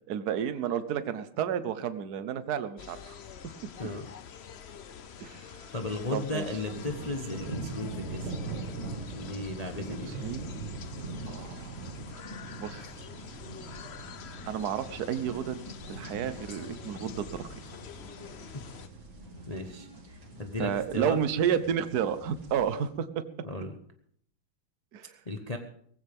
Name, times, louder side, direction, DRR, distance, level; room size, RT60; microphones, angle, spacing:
voice 1, 0.1-3.5 5.2-5.6 6.1-6.4 9.9-10.5 11.3-11.9 12.6-12.9 14.4-15.6 15.9-17.5 20.6-23.2 24.9-25.2, right 8 dB, 55° right, 12 dB, 1.3 m, -31 dB
sound 1, 2.8-18.9, left 7 dB, 80° left, 0.5 m, -46 dB
voice 2, 3.8-4.1 5.7-8.3 9.1-10.2 18.5-18.6 19.5-21.2 23.4-23.7 25.2-25.6, left 2 dB, 25° left, 5 dB, 0.8 m, -35 dB
sound 2, 6.7-22.9, right 3 dB, 35° right, 2.4 m, -42 dB
sound 3, 15.8-22.6, left 1 dB, 10° left, 5.8 m, -53 dB
18.5 x 16.0 x 3.6 m, 0.63 s
omnidirectional pair, 2.3 m